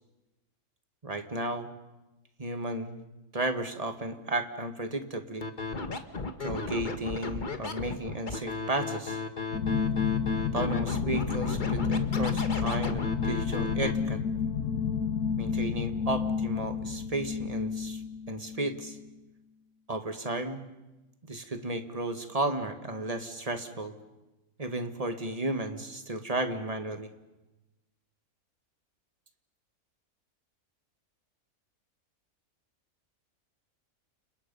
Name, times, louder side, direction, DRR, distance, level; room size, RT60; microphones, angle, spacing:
voice 1, 1.0-1.7 2.4-3.0 3.3-5.5 6.4-9.2 10.5-14.2 15.4-18.0 18.3-19.0 19.9-20.6 21.3-23.9 24.6-27.1, right 2 dB, 25° right, 7 dB, 1.8 m, -33 dB
Scratching (performance technique), 5.4-13.9, left 3 dB, 35° left, 1.5 m, -35 dB
sound 1, 9.5-19.0, left 6 dB, 85° left, 1.7 m, -30 dB
30.0 x 27.5 x 5.5 m, 1.1 s
omnidirectional pair, 1.6 m